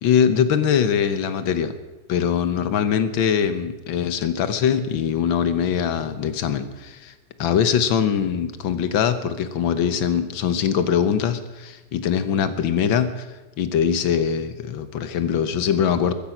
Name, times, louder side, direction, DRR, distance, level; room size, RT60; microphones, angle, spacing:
voice 1, 0.0-1.7 2.1-7.1 7.4-13.3 13.6-16.1, left 8 dB, 90° left, 12 dB, 1.8 m, -22 dB
15.0 x 14.5 x 5.9 m, 1.2 s
omnidirectional pair, 2.1 m